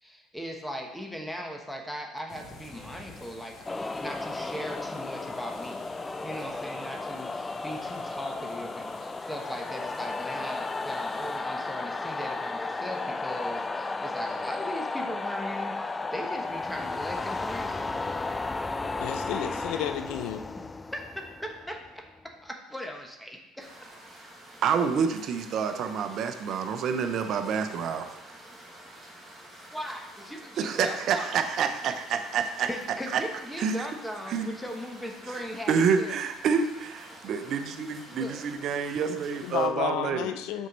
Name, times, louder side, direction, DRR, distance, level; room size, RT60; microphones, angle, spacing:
voice 1, 0.0-18.5 20.9-22.0 22.4-23.7 29.7-31.4 32.6-36.2 38.1-38.5, equal, 5° left, 2 dB, 1.2 m, -39 dB
sound 1, 2.3-11.4, left 2 dB, 40° left, 1.7 m, -49 dB
sound 2, 3.7-22.2, left 3 dB, 20° left, 0.3 m, -34 dB
voice 2, 19.0-20.4 39.4-40.7, left 10 dB, 75° left, 9 dB, 0.6 m, -31 dB
sound 3, 23.6-39.7, right 1 dB, 15° right, 2.0 m, -49 dB
voice 3, 24.6-28.1 30.6-32.7 33.1-33.2 33.6-33.8 34.3-34.5 35.3-35.4 35.7-40.3, right 6 dB, 55° right, 8 dB, 0.8 m, -28 dB
6.3 x 4.5 x 5.3 m, 1.0 s
supercardioid pair, 85°, 0 cm